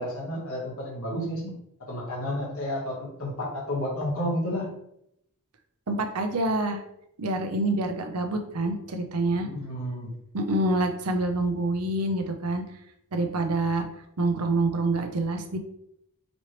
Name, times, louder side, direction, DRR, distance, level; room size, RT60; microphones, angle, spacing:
voice 1, 0.0-1.6 1.9-4.8 9.4-10.1, equal, 70° left, -3 dB, 1.3 m, -31 dB
voice 2, 5.9-6.8 7.2-9.5 10.3-12.6 13.1-13.8 14.2-15.6, right 2 dB, 90° right, 5 dB, 0.7 m, -26 dB
5.3 x 3.0 x 3.0 m, 0.75 s
head